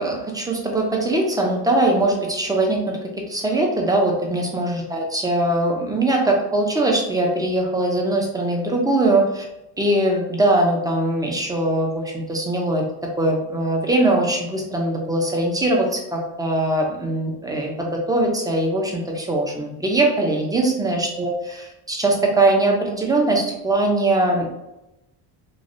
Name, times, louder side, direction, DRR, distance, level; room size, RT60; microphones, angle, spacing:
voice 1, 0.0-3.0 3.3-9.4 9.8-12.8 13.2-24.5, right 2 dB, 10° right, 0 dB, 0.6 m, -21 dB
3.2 x 2.4 x 2.6 m, 0.91 s
cardioid pair, 105°, 45 cm